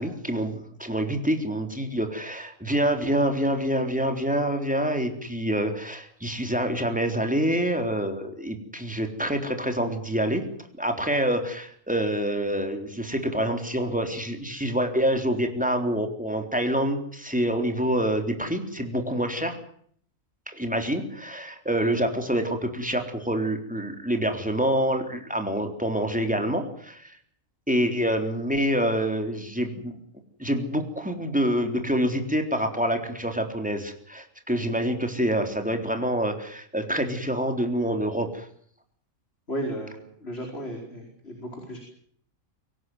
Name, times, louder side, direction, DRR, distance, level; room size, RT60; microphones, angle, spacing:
voice 1, 0.0-10.4 10.8-19.6 20.5-27.2 27.7-30.0 30.4-38.5, equal, 5° right, 4 dB, 3.8 m, -26 dB
voice 2, 39.5-41.8, equal, 45° left, 2 dB, 5.1 m, -34 dB
24.5 x 17.5 x 9.4 m, 0.62 s
omnidirectional pair, 1.5 m